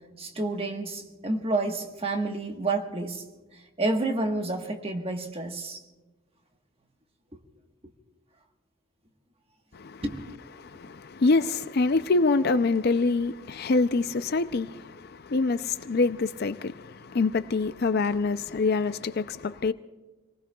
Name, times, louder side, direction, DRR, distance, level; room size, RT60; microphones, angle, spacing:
voice 1, 0.2-3.2 3.8-5.8 10.0-10.4, right 2 dB, 25° right, 1.3 m, -29 dB
voice 2, 10.6-19.7, left 3 dB, 45° left, 0.4 m, -25 dB
29.0 x 19.5 x 2.3 m
head